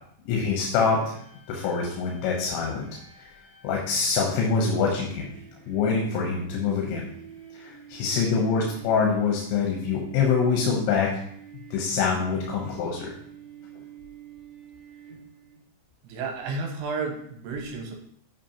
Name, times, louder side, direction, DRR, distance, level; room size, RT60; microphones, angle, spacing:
voice 1, 0.3-1.1 1.5-2.9 3.6-5.3 5.7-7.1 7.5-11.1 11.7-13.1, left 5 dB, 85° left, -1 dB, 3.3 m, -25 dB
sound 1, 1.1-15.6, right 6 dB, 55° left, 0.9 m, -48 dB
voice 2, 16.0-17.9, right 4 dB, 80° right, 2 dB, 3.2 m, -32 dB
8.2 x 5.2 x 2.9 m, 0.67 s
omnidirectional pair, 5.2 m